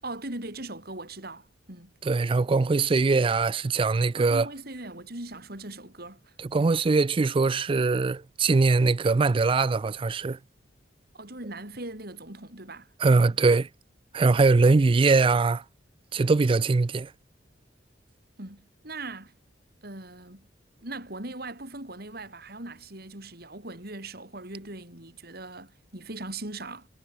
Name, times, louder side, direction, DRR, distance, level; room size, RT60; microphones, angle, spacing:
voice 1, 0.0-1.9 4.2-6.3 11.1-13.4 18.4-19.3 19.8-20.5 20.8-26.9, right 2 dB, 55° right, 6.3 m, -40 dB
voice 2, 2.0-4.5 6.4-10.4 13.0-13.7 14.1-15.6 16.1-17.1, right 3 dB, 30° right, 0.4 m, -22 dB
head